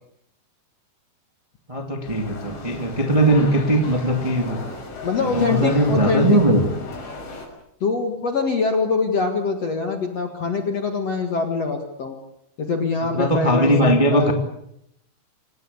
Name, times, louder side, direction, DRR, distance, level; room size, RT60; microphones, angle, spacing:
voice 1, 1.7-4.6 5.1-6.6 13.1-14.3, right 1 dB, 20° right, 4 dB, 0.8 m, -19 dB
sound 1, 2.0-7.5, left 3 dB, 70° left, 8.2 m, -36 dB
voice 2, 5.0-6.4 7.8-12.2 12.6-14.3, left 4 dB, 55° left, 5 dB, 1.9 m, -24 dB
27.0 x 18.0 x 8.4 m, 0.76 s
omnidirectional pair, 5.7 m